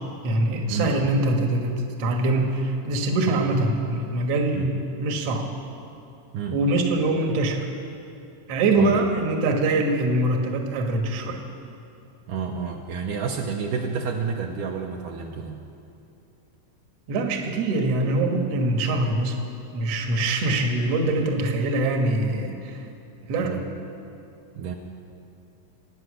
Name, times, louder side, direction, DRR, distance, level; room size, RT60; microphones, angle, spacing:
voice 1, 0.2-5.5 6.5-7.7 8.5-11.4 17.1-19.4 19.7-22.8 23.3-23.6, right 2 dB, 55° right, 3 dB, 2.1 m, -23 dB
voice 2, 8.8-9.2 12.3-15.6 23.4-23.6 24.6-24.8, right 6 dB, 75° right, 1 dB, 2.3 m, -30 dB
25.0 x 9.2 x 6.3 m, 2.7 s
omnidirectional pair, 4.1 m